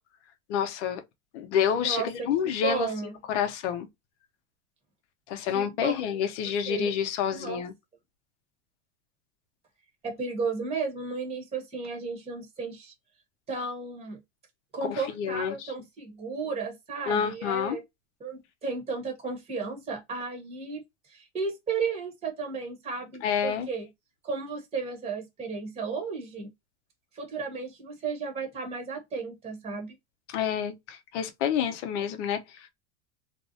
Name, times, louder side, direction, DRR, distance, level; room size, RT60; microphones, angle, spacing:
voice 1, 0.5-1.0 1.3-2.9 3.3-3.9 5.3-7.7 14.8-15.7 17.1-17.8 23.2-23.7 30.3-32.7, left 8 dB, 70° left, 0.7 m, -28 dB
voice 2, 1.8-2.1 2.6-3.1 5.5-6.0 6.7-6.9 7.3-7.6 10.0-12.9 13.5-14.2 14.7-17.8 18.2-20.8 21.1-23.9 24.2-26.5 27.1-29.9, right 4 dB, 15° right, 0.9 m, -34 dB
2.5 x 2.0 x 2.6 m
hypercardioid pair, 110°, 36 cm